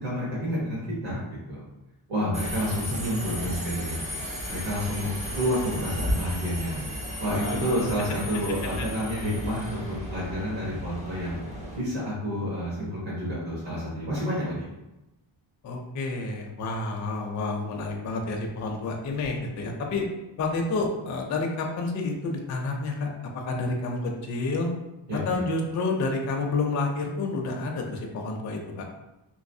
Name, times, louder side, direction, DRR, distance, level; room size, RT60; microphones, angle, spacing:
voice 1, 0.0-1.6 2.1-4.0 4.5-5.1 5.3-6.8 7.2-11.4 11.7-14.7 25.1-25.2, equal, 60° right, -7 dB, 1.2 m, -29 dB
Subway metro underground, 2.3-11.8, equal, 15° right, 0.5 m, -34 dB
voice 2, 7.2-7.9 8.8-8.9 15.6-20.1 20.4-24.7 25.1-28.9, left 3 dB, 40° left, 1 dB, 0.4 m, -29 dB
3.1 x 3.0 x 2.6 m, 0.98 s
wide cardioid pair, 165°, 49 cm